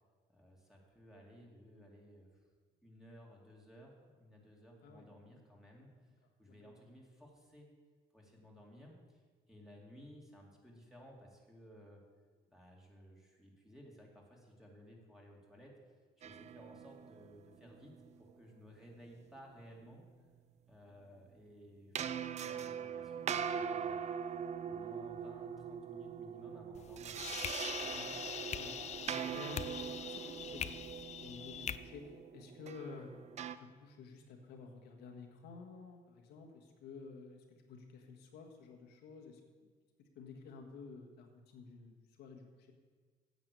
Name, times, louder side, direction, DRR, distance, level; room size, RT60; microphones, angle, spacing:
voice 1, 0.3-2.4 2.8-7.7 8.1-12.0 12.5-20.1 20.7-24.0 24.7-27.4, equal, ahead, -2 dB, 2.6 m, -57 dB
sound 1, 16.2-18.3 21.9-33.6, right 8 dB, 40° right, 0.5 m, -42 dB
sound 2, 26.7-31.8, left 9 dB, 40° left, 0.4 m, -43 dB
voice 2, 27.7-28.2 28.5-33.1 33.6-39.4 40.0-42.7, left 4 dB, 85° left, 2 dB, 1.6 m, -52 dB
9.5 x 7.8 x 6.8 m, 1.5 s
cardioid pair, 110°, 17 cm